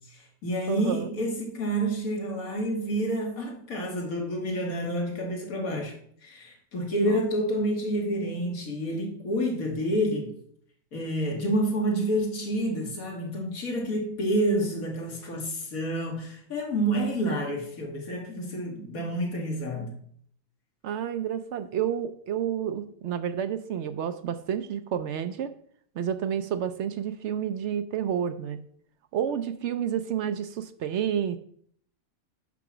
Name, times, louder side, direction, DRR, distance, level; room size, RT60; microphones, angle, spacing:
voice 1, 0.1-6.0 6.2-10.4 10.9-20.0, right 1 dB, 90° left, 2.1 m, -29 dB
voice 2, 0.7-1.1 7.0-7.2 20.8-25.5 26.0-28.6 29.1-31.4, right 9 dB, 65° right, 0.8 m, -30 dB
5.9 x 5.9 x 6.0 m
omnidirectional pair, 1.4 m